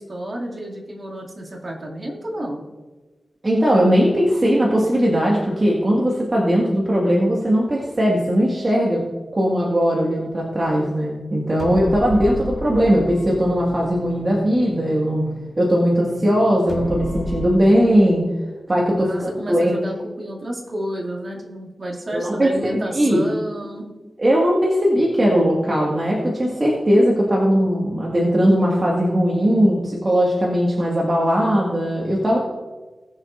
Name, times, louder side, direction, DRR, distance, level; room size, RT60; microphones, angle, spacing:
voice 1, 0.0-2.6 11.5-12.4 19.0-23.9, right 1 dB, 50° right, -2 dB, 2.4 m, -31 dB
voice 2, 3.4-9.0 9.3-15.2 15.6-18.2 18.7-19.8 22.1-23.2 24.2-32.4, equal, 35° right, -4 dB, 1.8 m, -19 dB
sound 1, 11.6-17.5, left 2 dB, 60° left, 1.9 m, -33 dB
20.0 x 7.2 x 2.6 m, 1.3 s
wide cardioid pair, 85°, 0 cm